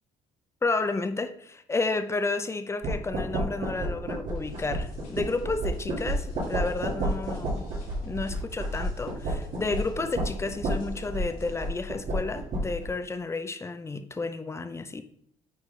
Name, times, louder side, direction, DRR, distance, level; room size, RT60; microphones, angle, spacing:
voice 1, 0.6-7.7 8.0-15.0, left 3 dB, 20° left, 0.5 m, -31 dB
sound 1, 2.8-12.9, right 1 dB, 60° right, 2.0 m, -31 dB
sound 2, 4.3-11.7, left 2 dB, 85° left, 2.0 m, -51 dB
9.7 x 3.9 x 3.2 m
cardioid pair, 110°, 14 cm